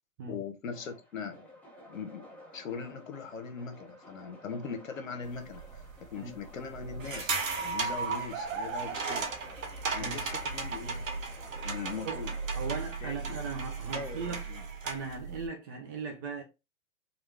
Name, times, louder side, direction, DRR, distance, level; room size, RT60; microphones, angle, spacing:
voice 1, 0.3-1.4 1.9-2.3 2.5-9.3 9.9-11.0 11.6-12.3 13.0-13.4 13.9-14.6, left 5 dB, 85° left, 0.9 m, -40 dB
sound 1, 0.7-12.7, equal, 5° left, 0.9 m, -53 dB
sound 2, 5.2-15.5, right 5 dB, 60° right, 0.7 m, -39 dB
sound 3, 7.0-15.1, right 4 dB, 80° right, 1.2 m, -37 dB
voice 2, 12.5-14.4 14.8-16.4, right 5 dB, 20° right, 0.3 m, -38 dB
3.1 x 2.3 x 3.2 m
hypercardioid pair, 115°, 39 cm